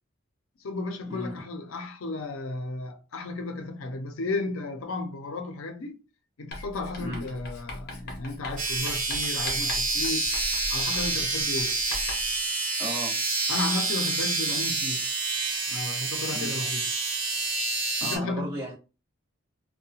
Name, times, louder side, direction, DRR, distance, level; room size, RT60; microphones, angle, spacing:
voice 1, 0.6-6.0 6.4-10.3 10.7-11.8 13.5-15.1 15.7-16.9 18.0-18.6, left 2 dB, 85° left, 0.5 m, -34 dB
Writing, 6.5-12.4, left 1 dB, 50° left, 0.8 m, -40 dB
sound 1, 8.6-18.2, right 3 dB, 40° right, 0.8 m, -28 dB
voice 2, 12.8-13.2 16.3-16.6 18.0-18.7, equal, 10° right, 1.2 m, -35 dB
2.7 x 2.2 x 2.7 m
head